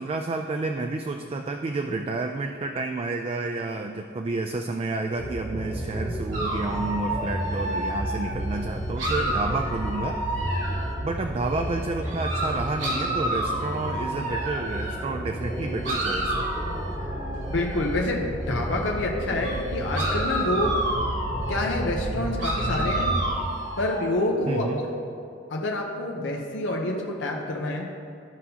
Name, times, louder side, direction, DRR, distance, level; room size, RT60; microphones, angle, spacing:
voice 1, 0.0-10.4 11.0-16.5 24.5-24.9, right 3 dB, 30° right, 5 dB, 0.3 m, -30 dB
sound 1, 5.2-23.3, right 1 dB, 15° right, 1.1 m, -32 dB
sound 2, 6.3-8.4 9.0-11.0 12.0-15.0 15.8-17.8 19.4-19.6 19.9-21.6 22.4-24.1, right 1 dB, 80° right, 2.0 m, -30 dB
voice 2, 17.5-20.8 21.5-23.2 23.8-24.8 25.5-27.9, left 2 dB, 80° left, 0 dB, 0.7 m, -27 dB
13.5 x 5.4 x 2.8 m, 2.5 s
head